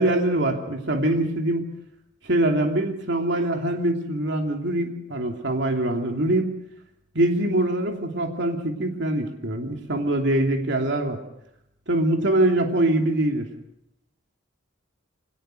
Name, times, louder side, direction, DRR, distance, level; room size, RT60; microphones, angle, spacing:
voice 1, 0.0-1.6 2.2-6.5 7.1-11.2 11.9-13.5, right 1 dB, 60° right, 3 dB, 2.9 m, -23 dB
24.5 x 18.5 x 6.7 m, 0.81 s
head